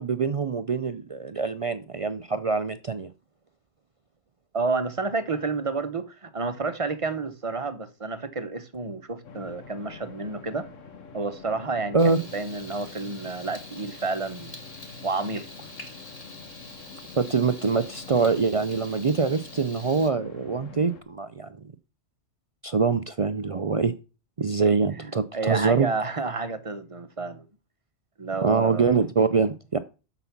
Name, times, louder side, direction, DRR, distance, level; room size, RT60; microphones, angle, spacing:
voice 1, 0.0-3.1 11.9-12.2 17.2-21.5 22.6-23.9 24.4-25.9 28.4-29.8, right 5 dB, 60° right, 0.3 m, -24 dB
voice 2, 4.5-10.7 11.1-14.6 15.0-15.7 24.9-27.4 28.2-28.9, right 3 dB, 30° right, 0.8 m, -30 dB
sound 1, 9.2-21.0, left 4 dB, 75° left, 1.4 m, -46 dB
Frying (food), 12.0-20.1, left 2 dB, 30° left, 2.1 m, -46 dB
8.0 x 6.9 x 5.8 m
omnidirectional pair, 1.3 m